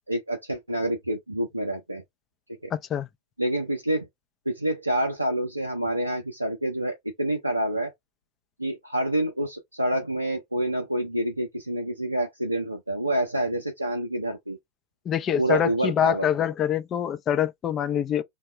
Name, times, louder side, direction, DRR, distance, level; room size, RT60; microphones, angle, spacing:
voice 1, 0.1-2.0 2.5-2.7 3.4-4.1 4.5-7.9 8.6-14.6 15.4-16.3, right 1 dB, 85° right, 0.6 m, -27 dB
voice 2, 2.7-3.1 15.1-18.2, left 9 dB, 30° left, 0.5 m, -25 dB
3.6 x 2.3 x 3.2 m
figure-of-eight pair, 90°, 0 cm